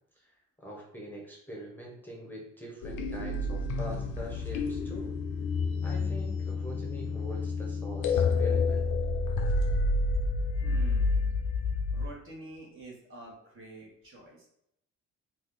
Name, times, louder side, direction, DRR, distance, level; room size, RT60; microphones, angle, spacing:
voice 1, 0.6-5.1 5.8-8.9, equal, 5° left, -3 dB, 0.8 m, -43 dB
sound 1, 2.8-12.1, left 3 dB, 85° left, 0.5 m, -29 dB
voice 2, 10.6-11.3 11.9-14.5, right 2 dB, 40° right, -2 dB, 1.2 m, -47 dB
2.7 x 2.4 x 3.7 m, 0.75 s
cardioid pair, 90°, 30 cm